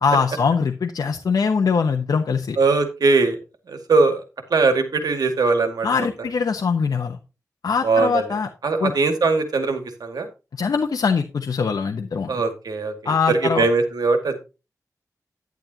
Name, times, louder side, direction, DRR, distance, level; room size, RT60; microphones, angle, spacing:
voice 1, 0.0-2.6 5.8-7.2 7.6-8.5 8.8-8.9 10.6-12.3 13.0-13.7, left 5 dB, 80° left, 4 dB, 1.0 m, -22 dB
voice 2, 2.6-3.4 3.7-4.2 4.5-6.1 7.8-8.3 8.6-10.3 12.3-14.4, right 3 dB, 90° right, 6 dB, 2.1 m, -20 dB
10.5 x 10.5 x 2.9 m, 0.29 s
wide cardioid pair, 95°, 7 cm